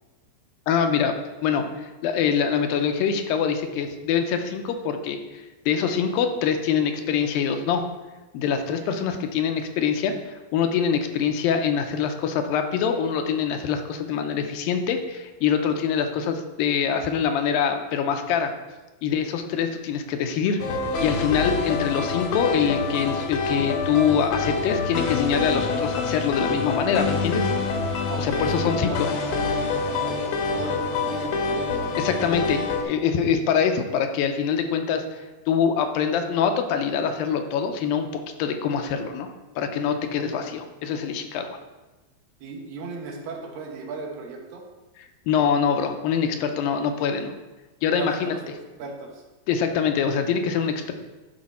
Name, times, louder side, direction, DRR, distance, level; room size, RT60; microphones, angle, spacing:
voice 1, 0.7-1.2 1.4-7.8 8.3-18.5 19.0-20.6 21.0-27.5 28.2-29.1 32.0-39.3 39.6-41.6 45.3-47.4 47.8-48.3 49.5-50.9, left 7 dB, 85° left, 6 dB, 2.4 m, -24 dB
sound 1, 20.6-32.8, left 4 dB, 65° left, 1.7 m, -26 dB
voice 2, 28.1-29.4 29.7-32.0 42.4-44.6 47.9-49.2, right 4 dB, 75° right, 0 dB, 2.9 m, -36 dB
11.5 x 4.9 x 4.2 m, 1.1 s
omnidirectional pair, 4.2 m